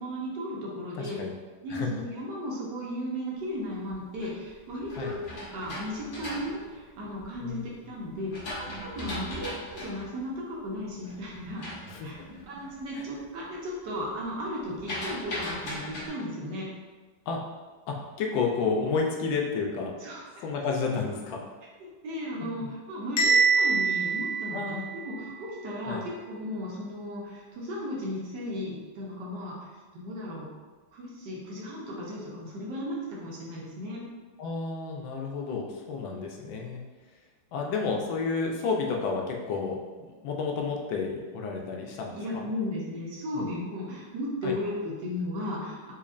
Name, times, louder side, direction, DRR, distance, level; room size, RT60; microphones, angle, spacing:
voice 1, 0.0-1.2 1.6-5.2 5.5-8.3 8.6-11.7 12.0-12.1 12.4-16.7 20.0-20.4 21.8-29.7 29.9-30.5 30.9-34.0 41.8-45.9, left 1 dB, 70° right, -4 dB, 1.3 m, -35 dB
voice 2, 1.0-1.3 1.7-1.9 5.0-5.1 7.4-7.6 11.9-12.1 12.9-13.1 17.3-17.4 17.9-19.9 20.4-21.4 22.4-22.7 24.5-24.9 25.8-26.0 34.4-36.8 37.5-39.8 40.2-42.4 43.3-43.4 44.4-44.6, left 4 dB, 80° left, 0 dB, 1.3 m, -31 dB
sound 1, 3.7-7.5 8.0-12.8 13.2-13.6 13.9-16.1, equal, 50° left, 0.6 m, -39 dB
Bell, 23.2-25.2, right 4 dB, 65° left, 1.2 m, -24 dB
4.1 x 2.9 x 2.4 m, 1.3 s
omnidirectional pair, 2.1 m